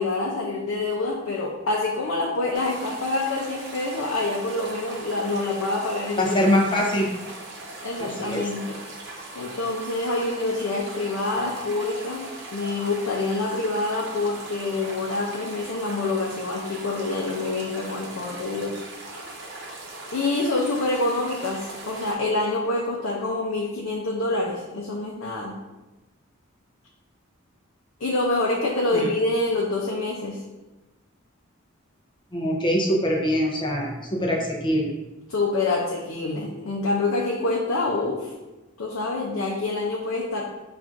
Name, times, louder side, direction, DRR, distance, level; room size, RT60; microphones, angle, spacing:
voice 1, 0.0-6.5 7.8-8.8 9.3-18.8 20.1-25.6 28.0-30.4 35.3-38.3 38.8-40.5, left 2 dB, 75° left, -2 dB, 0.5 m, -26 dB
sound 1, 2.5-22.1, right 2 dB, 55° right, 0.8 m, -39 dB
voice 2, 6.2-7.1 8.0-8.4 28.9-29.1 32.3-34.9, equal, 25° left, -1 dB, 0.6 m, -23 dB
5.8 x 2.5 x 2.5 m, 1.1 s
head